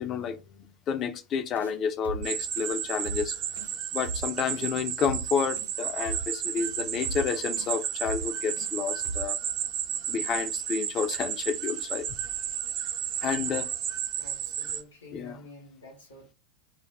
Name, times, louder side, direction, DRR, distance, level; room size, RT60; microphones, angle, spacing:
voice 1, 0.0-3.4 3.9-9.4 10.1-12.1 13.2-13.7 15.1-15.4, left 7 dB, 30° left, 0.4 m, -30 dB
sound 1, 1.5-1.7 2.0-2.3 2.5-2.7 3.0-3.3 3.5-3.7 4.0-4.3 4.5-4.7 5.0-5.3 5.5-5.7 6.0-6.3 6.5-6.7 7.0-7.3 7.5-7.7 8.0-8.3 8.5-8.7 9.0-9.3, right 4 dB, 85° right, 0.8 m, -37 dB
sound 2, 2.2-14.8, right 9 dB, 35° right, 0.4 m, -33 dB
voice 2, 14.2-16.3, left 2 dB, 65° left, 0.8 m, -48 dB
2.4 x 2.2 x 3.3 m
figure-of-eight pair, 90°, 0 cm